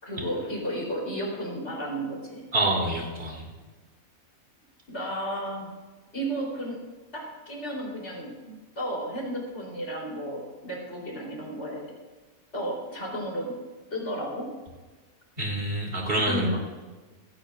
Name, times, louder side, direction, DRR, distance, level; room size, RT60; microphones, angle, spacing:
voice 1, 0.0-2.5 4.9-5.7 6.1-6.8 7.1-11.9 12.5-13.6 13.9-14.5 16.2-16.6, equal, 50° left, -3 dB, 3.9 m, -33 dB
voice 2, 2.5-3.5 15.4-16.6, right 1 dB, 40° right, -1 dB, 3.1 m, -26 dB
16.0 x 15.5 x 2.5 m, 1.3 s
omnidirectional pair, 1.5 m